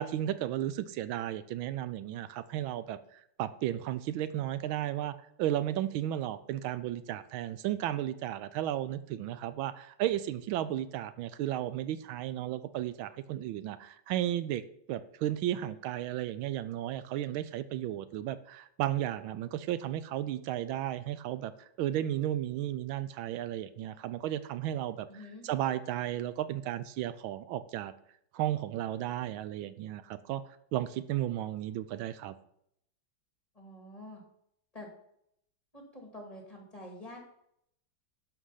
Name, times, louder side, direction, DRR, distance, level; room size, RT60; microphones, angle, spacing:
voice 1, 0.0-14.6 14.9-27.9 28.3-30.4 30.7-32.3, right 12 dB, 85° right, 14 dB, 1.4 m, -34 dB
voice 2, 25.1-25.4 33.6-34.2 34.7-34.9 35.7-37.2, left 1 dB, 20° left, 1 dB, 2.0 m, -47 dB
11.5 x 5.1 x 5.6 m, 0.73 s
omnidirectional pair, 2.2 m